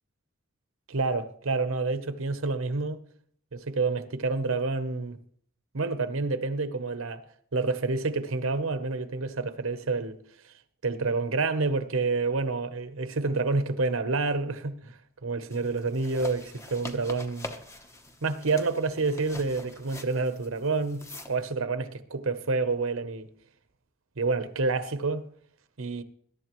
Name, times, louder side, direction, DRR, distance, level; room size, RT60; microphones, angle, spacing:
voice 1, 0.9-3.0 3.5-5.2 5.7-7.2 7.5-10.2 10.8-17.5 18.2-21.0 21.3-23.3 24.2-25.2 25.8-26.0, right 3 dB, 75° right, 0.9 m, -28 dB
sound 1, 15.5-21.4, left 2 dB, 15° left, 0.9 m, -44 dB
20.5 x 11.5 x 3.1 m
head